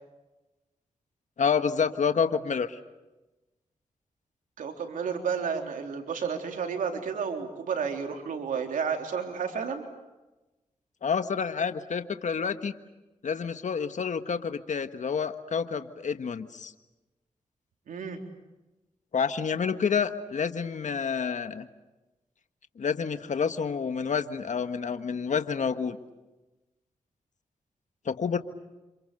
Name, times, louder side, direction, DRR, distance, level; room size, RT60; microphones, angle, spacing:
voice 1, 1.4-2.8 11.0-12.7 13.2-16.7 19.1-21.7 22.8-26.0 28.0-28.4, left 6 dB, 65° left, 9 dB, 1.5 m, -28 dB
voice 2, 4.6-9.8 17.9-18.2, right 6 dB, 90° right, 4 dB, 3.6 m, -31 dB
29.5 x 27.0 x 6.8 m, 1.1 s
cardioid pair, 55°, 13 cm